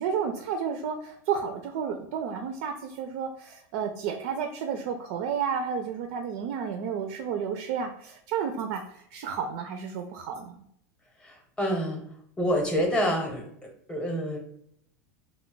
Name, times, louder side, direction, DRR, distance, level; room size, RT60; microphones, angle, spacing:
voice 1, 0.0-10.5, right 7 dB, 65° right, 5 dB, 0.3 m, -31 dB
voice 2, 11.2-12.0 12.4-13.4 13.9-14.4, equal, 10° left, 1 dB, 0.7 m, -27 dB
2.2 x 2.0 x 3.7 m, 0.70 s
supercardioid pair, 135°, 9 cm